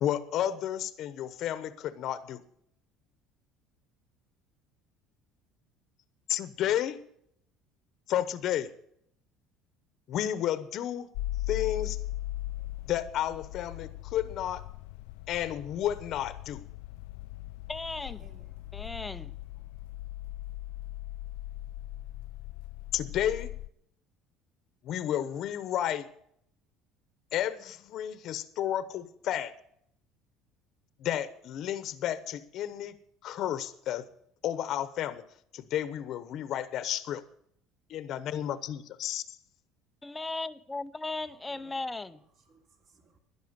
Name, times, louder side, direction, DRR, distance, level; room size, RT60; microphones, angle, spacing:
voice 1, 0.0-2.4 6.3-7.0 8.1-8.7 10.1-11.1 11.5-12.0 12.9-14.6 15.3-16.6 22.9-23.5 24.8-26.0 27.3-29.5 31.0-32.9 33.2-34.0 34.4-35.2 35.5-37.2 37.9-39.2, left 11 dB, 45° left, 1.0 m, -32 dB
sound 1, 11.1-23.7, left 15 dB, 85° left, 0.5 m, -39 dB
voice 2, 17.7-18.3 18.7-19.3 40.0-42.2, left 3 dB, 10° left, 0.6 m, -36 dB
voice 3, 18.2-18.9 41.3-41.8 42.4-43.2, right 4 dB, 40° right, 3.1 m, -61 dB
11.0 x 11.0 x 8.0 m
cardioid pair, 155°, 0 cm